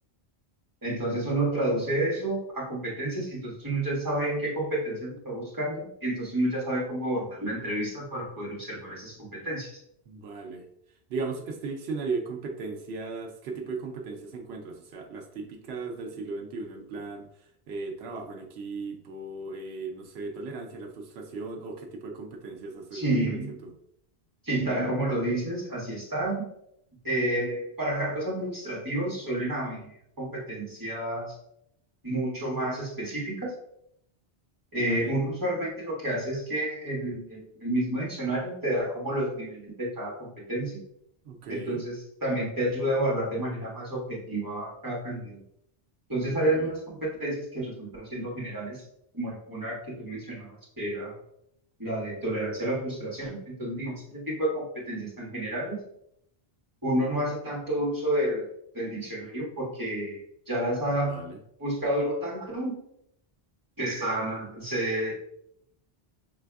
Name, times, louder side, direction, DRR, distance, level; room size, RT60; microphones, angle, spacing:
voice 1, 0.8-9.8 22.9-23.6 24.4-26.4 27.0-31.4 32.0-33.5 34.7-40.8 41.5-41.9 42.2-45.4 46.1-48.8 49.1-51.1 51.8-55.8 56.8-58.5 58.7-60.2 60.5-61.3 61.6-62.8 63.8-65.1, right 1 dB, 20° right, -5 dB, 1.6 m, -30 dB
voice 2, 10.1-10.7 11.1-23.7 34.7-35.2 41.2-41.8 46.3-46.7 60.9-61.4, right 3 dB, 85° right, 4 dB, 0.9 m, -37 dB
5.9 x 3.4 x 2.3 m, 0.73 s
omnidirectional pair, 1.0 m